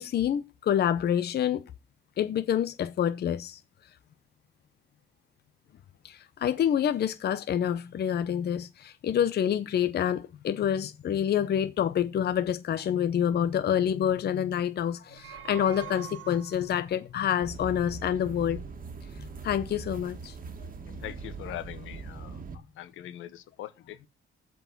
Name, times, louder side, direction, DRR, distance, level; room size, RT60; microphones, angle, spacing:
voice 1, 0.0-1.6 2.2-3.6 6.0-18.6 19.2-20.3, left 9 dB, 55° left, 0.7 m, -27 dB
sound 1, 15.0-16.9, right 12 dB, 75° right, 1.1 m, -44 dB
sound 2, 17.4-22.6, right 4 dB, 45° right, 1.6 m, -41 dB
voice 2, 21.0-22.4 22.8-24.1, left 13 dB, 85° left, 1.1 m, -41 dB
7.9 x 4.7 x 6.0 m
cardioid pair, 90°, 20 cm